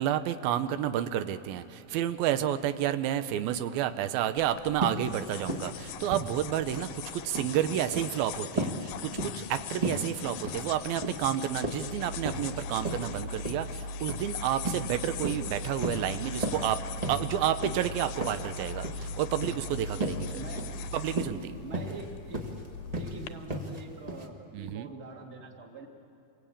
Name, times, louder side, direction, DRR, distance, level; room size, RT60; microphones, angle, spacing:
voice 1, 0.0-16.8 17.1-20.4 20.9-21.6 24.5-24.9, right 11 dB, 85° right, 11 dB, 2.6 m, -30 dB
voice 2, 3.6-4.0 7.5-7.6 20.3-20.8 21.6-22.5 23.0-25.9, right 2 dB, 20° right, 1 dB, 2.0 m, -45 dB
sound 1, 4.4-23.3, left 11 dB, 75° left, 2.3 m, -43 dB
sound 2, 4.8-5.1 5.4-5.8 6.0-6.9 7.2-7.6 7.9-8.2 8.6-8.8 9.2-9.5 9.8-10.1 10.4-10.7 11.0-11.3 11.6-12.5 12.8-13.1 13.4-13.6 14.1-14.3 14.6-14.9 15.2-15.5 15.8-16.1 16.4-16.7 17.0-17.2 17.6-17.8 18.2-18.5 18.8-19.1 19.4-19.6 20.0-20.3 20.6-20.8 21.1-21.4 21.7-22.0 22.3-22.6 22.9-23.1 23.5-23.8 24.1-24.2, right 1 dB, 45° right, 0.5 m, -34 dB
sound 3, 11.8-21.2, equal, 65° right, 5.1 m, -40 dB
28.5 x 23.5 x 8.6 m, 2.6 s
omnidirectional pair, 4.1 m